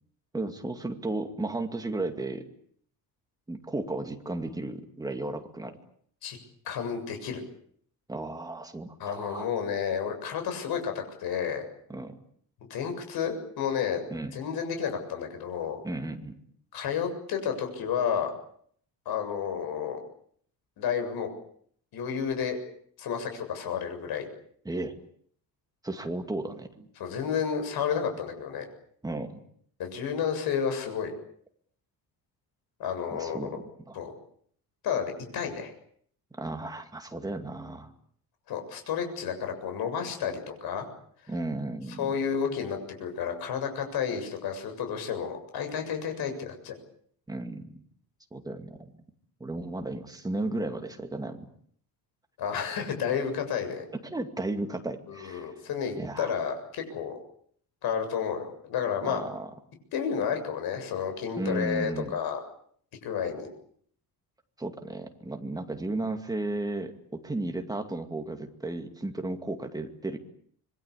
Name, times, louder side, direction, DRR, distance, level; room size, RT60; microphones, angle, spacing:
voice 1, 0.3-2.4 3.5-5.8 8.1-9.5 11.9-12.2 14.1-14.4 15.8-16.4 24.6-25.0 25.8-26.9 29.0-29.4 33.1-33.6 33.9-34.0 36.4-37.9 41.3-42.1 47.3-47.6 48.3-48.9 49.4-51.5 53.9-55.5 56.0-56.3 59.0-59.5 61.4-62.2 64.6-70.2, right 2 dB, 10° right, 5 dB, 2.3 m, -34 dB
voice 2, 6.7-7.4 9.0-11.6 12.7-14.0 14.3-15.8 16.7-18.3 19.1-20.0 20.8-21.3 21.9-22.6 23.0-24.3 27.0-28.7 29.8-31.1 32.8-33.6 33.9-34.1 34.8-35.7 38.5-40.9 42.0-46.7 52.4-53.9 55.1-57.1 57.8-59.2 59.9-62.4 63.0-63.5, left 7 dB, 80° left, 6 dB, 7.4 m, -31 dB
26.5 x 22.5 x 8.6 m, 0.63 s
cardioid pair, 170°, 37 cm